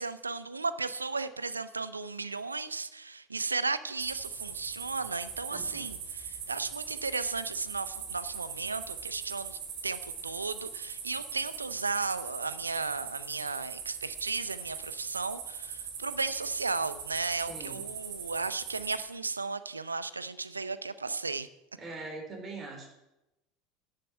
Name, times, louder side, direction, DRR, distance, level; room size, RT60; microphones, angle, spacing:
voice 1, 0.0-21.5, right 4 dB, 90° right, 15 dB, 0.5 m, -35 dB
sound 1, 4.0-19.0, right 7 dB, 60° right, 2.5 m, -40 dB
voice 2, 5.5-5.9 17.5-17.9 21.8-22.9, right 3 dB, 30° right, 1 dB, 3.9 m, -42 dB
11.0 x 6.7 x 8.5 m, 0.92 s
figure-of-eight pair, 75°, 0 cm